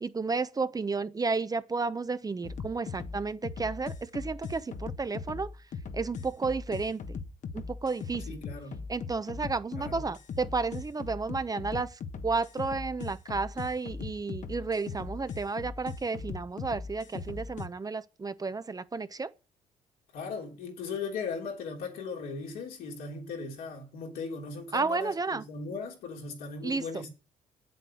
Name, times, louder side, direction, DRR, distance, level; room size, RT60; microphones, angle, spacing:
voice 1, 0.0-5.5 5.9-7.2 7.5-8.4 8.9-19.3 24.7-25.4 26.6-27.0, right 4 dB, 25° right, 0.8 m, -32 dB
sound 1, 2.4-17.7, left 5 dB, 55° left, 1.2 m, -39 dB
voice 2, 8.3-8.8 9.8-10.1 20.1-27.1, left 4 dB, 80° left, 3.4 m, -38 dB
8.3 x 7.9 x 6.3 m
supercardioid pair, 75°, 15 cm